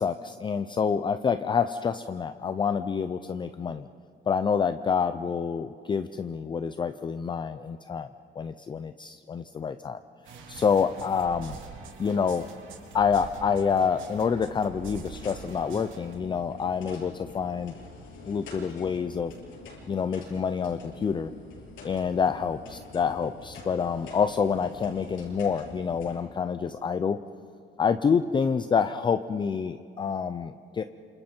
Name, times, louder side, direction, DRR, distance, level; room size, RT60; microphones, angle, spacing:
voice 1, 0.0-3.9 4.3-8.1 8.4-10.0 10.5-11.6 12.0-12.5 12.9-17.7 18.3-19.3 19.9-21.3 21.8-22.6 22.9-27.2 27.8-30.8, left 6 dB, 25° left, 11 dB, 0.5 m, -27 dB
sound 1, 10.2-16.1, right 5 dB, 75° right, 3.6 m, -45 dB
sound 2, 14.0-26.2, left 3 dB, 80° left, 7.7 m, -46 dB
30.0 x 27.5 x 4.5 m, 2.4 s
cardioid pair, 165°, 20 cm